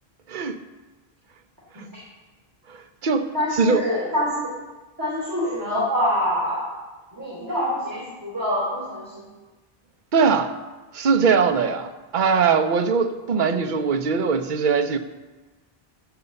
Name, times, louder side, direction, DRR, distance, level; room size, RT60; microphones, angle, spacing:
voice 1, 0.3-0.6 2.7-2.8 3.0-3.3 3.6-3.8 10.1-10.5 10.9-15.0, right 5 dB, 55° right, 0.8 m, -21 dB
voice 2, 3.3-4.5 5.0-6.7 7.1-9.3, equal, 20° right, 2.8 m, -25 dB
14.0 x 5.4 x 6.9 m
omnidirectional pair, 1.1 m